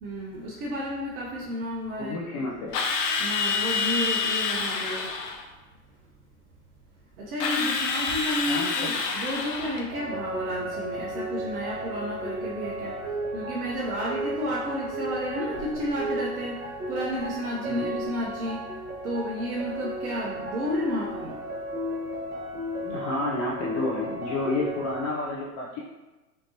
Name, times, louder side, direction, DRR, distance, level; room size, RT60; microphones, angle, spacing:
voice 1, 0.0-2.2 3.2-5.3 7.2-13.0 13.3-18.6 19.0-21.4, equal, 70° right, -4 dB, 1.0 m, -32 dB
voice 2, 2.0-2.8 8.5-8.9 17.7-17.9 22.8-25.8, left 2 dB, 30° left, -3 dB, 0.4 m, -30 dB
Drill, 2.7-5.4 7.4-9.9, left 5 dB, 85° left, 0.8 m, -27 dB
sound 1, 9.9-25.1, right 1 dB, 20° right, 0.9 m, -34 dB
5.1 x 2.9 x 2.8 m, 1.1 s
hypercardioid pair, 110°, 47 cm